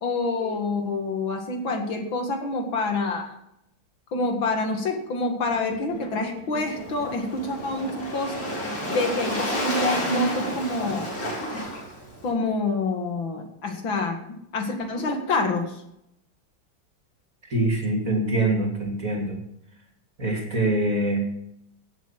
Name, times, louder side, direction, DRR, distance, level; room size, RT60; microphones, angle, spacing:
voice 1, 0.0-3.3 4.1-8.5 8.9-11.1 12.2-15.8, left 3 dB, 70° left, 4 dB, 2.7 m, -27 dB
sound 1, 5.5-9.4, right 1 dB, 80° right, 2.4 m, -41 dB
Waves surf, 6.6-12.3, equal, 45° left, 5.4 m, -31 dB
voice 2, 17.4-19.4 20.2-21.2, right 2 dB, 40° right, 1 dB, 3.1 m, -24 dB
17.5 x 7.3 x 6.0 m, 0.81 s
omnidirectional pair, 2.2 m